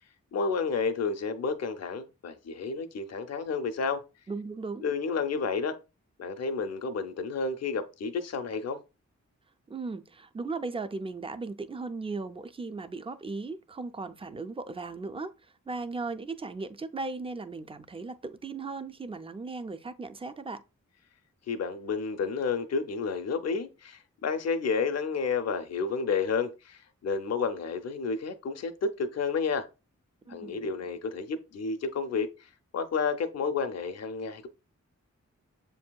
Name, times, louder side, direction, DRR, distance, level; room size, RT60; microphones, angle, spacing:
voice 1, 0.3-4.0 4.8-5.8 6.2-8.8 21.5-29.7 30.3-32.3 32.7-34.5, left 5 dB, 60° left, 0.5 m, -31 dB
voice 2, 4.3-4.8 9.7-15.3 15.7-20.6 30.3-30.7, right 3 dB, 20° right, 0.4 m, -37 dB
7.0 x 2.6 x 2.2 m
cardioid pair, 50°, 30 cm